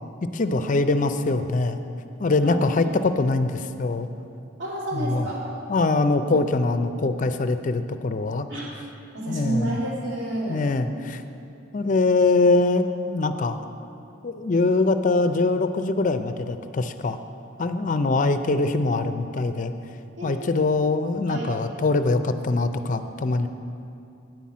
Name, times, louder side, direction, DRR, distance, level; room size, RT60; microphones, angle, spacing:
voice 1, 0.3-1.8 2.2-4.1 4.9-5.3 5.7-8.5 9.3-9.8 10.5-11.2 11.7-13.6 14.2-17.2 17.6-19.7 20.2-23.5, left 3 dB, 40° left, 10 dB, 0.4 m, -23 dB
voice 2, 4.6-5.4 6.2-6.3 8.5-8.7 9.1-10.6 20.2-20.7 21.3-21.5, right 1 dB, 65° right, -6 dB, 2.5 m, -30 dB
9.2 x 5.8 x 8.4 m, 2.6 s
head